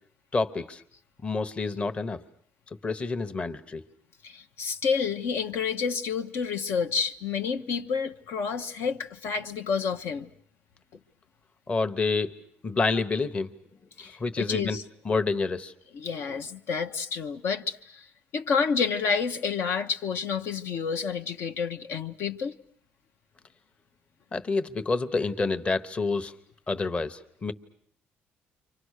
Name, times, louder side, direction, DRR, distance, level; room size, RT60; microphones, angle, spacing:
voice 1, 0.3-0.8 1.2-2.2 2.8-3.8 11.7-12.4 12.6-13.5 14.0-14.8 15.0-15.7 24.3-26.3 26.7-27.5, left 3 dB, 25° left, 1.1 m, -28 dB
voice 2, 4.2-10.3 14.0-14.8 15.9-18.1 18.3-22.6, left 6 dB, 70° left, 1.1 m, -29 dB
29.5 x 25.0 x 6.5 m
cardioid pair, 120°, 4 cm